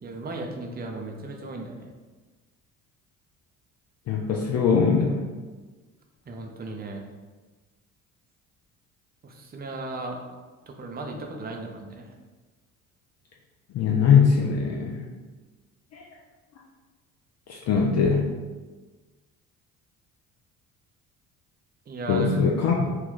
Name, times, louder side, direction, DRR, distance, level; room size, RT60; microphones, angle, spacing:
voice 1, 0.0-1.9 6.3-7.0 9.2-10.2 10.7-12.1 21.9-22.4, right 2 dB, 25° right, 2 dB, 0.6 m, -36 dB
voice 2, 4.1-5.2 13.7-15.1 15.9-16.0 17.5-18.2 22.1-22.9, left 6 dB, 40° left, -1 dB, 0.5 m, -21 dB
2.9 x 2.4 x 3.8 m, 1.3 s
hypercardioid pair, 55°, 41 cm